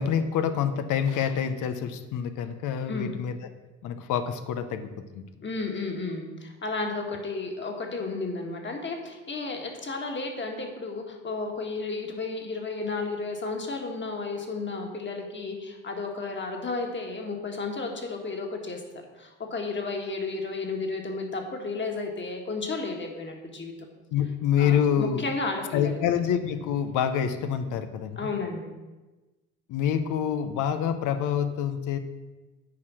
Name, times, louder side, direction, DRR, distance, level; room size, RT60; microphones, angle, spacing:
voice 1, 0.0-3.3 3.8-5.2 24.1-25.2 25.7-28.2 29.7-32.0, left 8 dB, 90° left, 9 dB, 0.7 m, -27 dB
voice 2, 5.4-23.7 24.6-26.0 28.2-28.7, left 3 dB, 40° left, 2 dB, 1.8 m, -33 dB
9.5 x 4.6 x 6.2 m, 1.2 s
cardioid pair, 90°, 30 cm